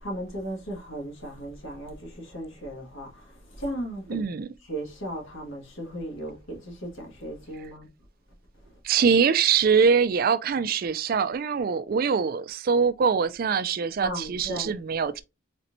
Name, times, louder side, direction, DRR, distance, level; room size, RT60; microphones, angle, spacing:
voice 1, 0.0-3.2 3.6-4.2 4.7-7.9 14.0-14.7, right 1 dB, 70° left, 1.8 m, -36 dB
voice 2, 4.1-4.5 8.8-15.2, right 6 dB, 45° right, 0.3 m, -23 dB
4.2 x 4.2 x 2.6 m
head